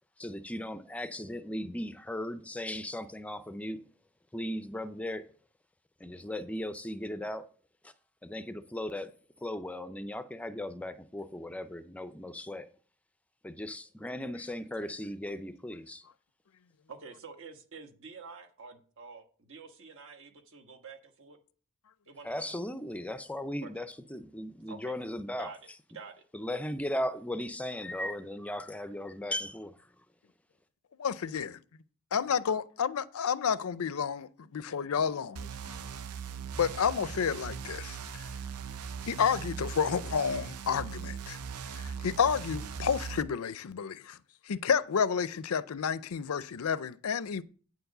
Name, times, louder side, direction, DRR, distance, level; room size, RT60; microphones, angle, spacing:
voice 1, 0.2-3.8 4.3-5.3 6.0-7.5 7.8-7.9 8.2-9.1 9.4-12.7 13.4-16.1 22.2-25.5 26.3-29.7, left 1 dB, 5° left, 0.4 m, -37 dB
voice 2, 16.9-21.4 22.1-22.5 23.6-23.9 24.7-24.9 25.4-25.6 25.9-26.2, right 5 dB, 60° right, 1.3 m, -48 dB
voice 3, 31.0-31.5 32.1-35.5 36.6-38.2 39.1-41.4 41.8-44.2 44.5-47.4, left 6 dB, 70° left, 0.5 m, -30 dB
sound 1, 35.4-43.2, right 6 dB, 85° right, 0.6 m, -40 dB
9.3 x 4.7 x 6.6 m
head